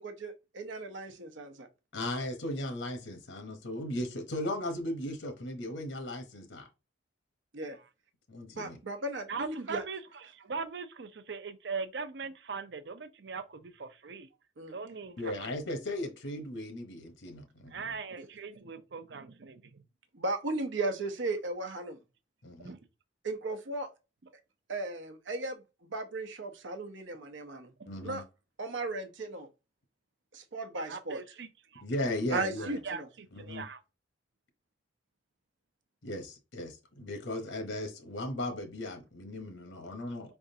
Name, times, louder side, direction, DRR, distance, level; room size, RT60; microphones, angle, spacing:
voice 1, 0.0-1.7 7.5-7.8 8.5-9.8 14.6-14.7 18.2-18.3 20.1-22.0 23.2-23.9 24.7-27.7 28.0-28.2 28.6-29.5 30.3-31.2 32.3-33.1, right 2 dB, 85° right, 0.9 m, -36 dB
voice 2, 1.9-6.7 8.3-8.8 15.2-17.9 22.4-22.7 27.9-28.2 31.8-32.8 33.3-33.7 36.0-40.4, left 1 dB, 85° left, 0.9 m, -37 dB
voice 3, 9.3-14.3 14.7-15.5 17.7-19.8 22.6-22.8 27.8-27.9 30.9-31.8 32.6-33.8, right 5 dB, 65° right, 0.6 m, -40 dB
4.8 x 3.5 x 2.7 m
head